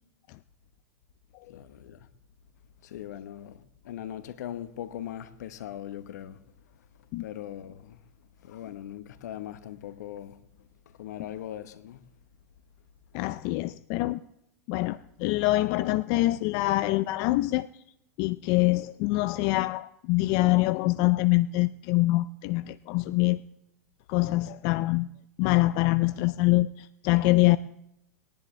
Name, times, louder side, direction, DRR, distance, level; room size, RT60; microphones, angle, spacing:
voice 1, 1.5-2.1 2.8-6.4 7.2-8.0 8.4-10.4 11.0-12.0, left 11 dB, 70° left, 1.0 m, -40 dB
voice 2, 13.1-14.2 14.7-17.7 18.2-23.4 24.1-25.1 25.4-27.6, left 19 dB, 50° left, 0.4 m, -25 dB
20.5 x 10.5 x 3.2 m
hypercardioid pair, 105°, 9 cm